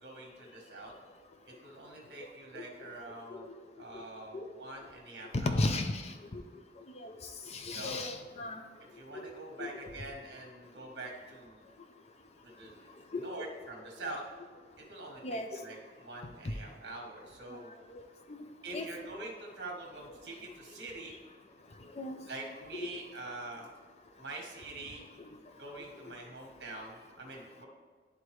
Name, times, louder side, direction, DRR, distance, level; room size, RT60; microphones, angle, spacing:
voice 1, 0.0-0.9 1.6-3.5 3.8-5.6 7.7-8.0 8.9-11.7 12.4-12.8 13.2-14.2 14.8-17.7 18.6-21.1 22.3-23.7 24.2-25.0 25.6-27.6, right 2 dB, 65° right, 0 dB, 1.4 m, -45 dB
voice 2, 5.3-6.4 7.0-7.1 7.5-8.6 9.1-9.3 9.6-9.7 13.1-13.3 14.0-14.1 15.2-15.6 17.9-18.0 18.4-18.9 22.0-22.2 22.7-22.9 25.2-25.3, left 2 dB, 35° left, 6 dB, 0.5 m, -35 dB
11.0 x 3.8 x 3.1 m, 1.5 s
head